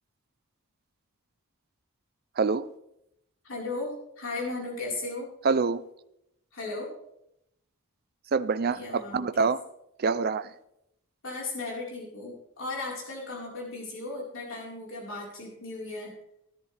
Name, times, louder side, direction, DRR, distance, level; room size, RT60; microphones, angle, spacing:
voice 1, 2.4-2.7 5.4-5.8 8.3-9.6 10.0-10.5, right 4 dB, 45° right, 15 dB, 0.4 m, -25 dB
voice 2, 3.4-5.3 6.5-6.9 8.7-9.5 11.2-16.1, left 2 dB, 60° left, -3 dB, 4.4 m, -36 dB
16.5 x 10.5 x 3.4 m, 0.80 s
head